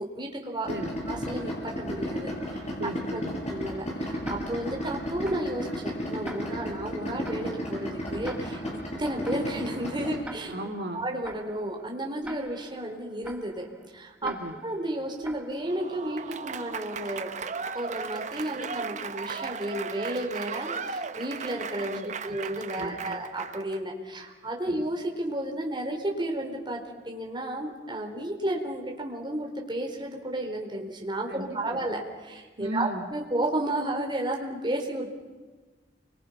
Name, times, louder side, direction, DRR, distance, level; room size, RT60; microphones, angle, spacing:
voice 1, 0.0-0.7 1.1-2.6 3.1-3.2 3.5-10.5 10.9-13.7 13.9-14.3 14.6-17.3 17.7-35.1, right 1 dB, 25° right, 1 dB, 4.1 m, -32 dB
Idling, 0.6-10.2, equal, 40° left, 6.3 m, -34 dB
voice 2, 0.7-1.0 2.8-3.3 10.5-11.1 14.2-14.5 21.9-22.4 22.8-23.2 24.7-24.8 31.3-31.9 32.6-33.0, right 1 dB, 70° right, 2 dB, 2.2 m, -36 dB
Tick-tock, 4.2-16.1, right 1 dB, 5° right, 1.5 m, -47 dB
Applause / Crowd, 15.6-23.8, right 5 dB, 45° right, 0.9 m, -36 dB
30.0 x 25.0 x 5.8 m, 1.3 s
head